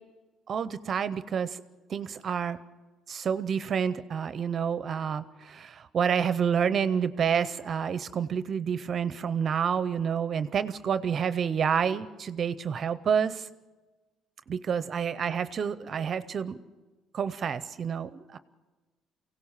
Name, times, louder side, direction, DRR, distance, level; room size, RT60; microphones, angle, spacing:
voice 1, 0.5-1.6 1.9-2.6 3.1-13.5 14.5-16.6 17.1-18.4, right 7 dB, 40° right, 14 dB, 0.6 m, -29 dB
24.0 x 17.0 x 7.3 m, 1.2 s
cardioid pair, 125°, 0 cm